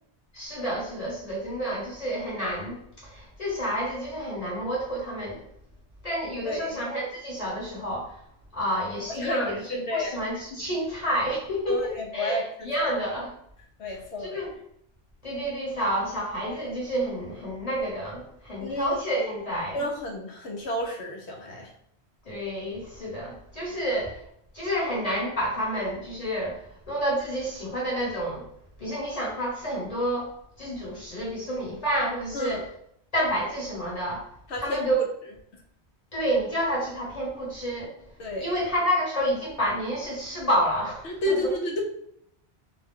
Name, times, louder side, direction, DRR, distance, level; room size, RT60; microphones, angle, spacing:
voice 1, 0.3-5.4 6.0-8.1 8.5-13.3 14.2-14.5 15.2-19.8 22.2-24.2 24.5-26.6 26.9-28.4 28.8-30.3 30.6-32.6 33.1-34.3 34.6-35.0 36.1-38.1 38.4-41.4, equal, 35° left, -5 dB, 1.0 m, -29 dB
voice 2, 6.4-6.8 9.2-10.1 11.7-12.9 13.8-14.4 18.6-19.0 19.7-21.7 32.3-32.6 34.5-35.1 38.2-38.6 41.0-41.8, left 1 dB, 80° left, 1 dB, 1.0 m, -31 dB
2.5 x 2.2 x 3.4 m, 0.72 s
omnidirectional pair, 1.1 m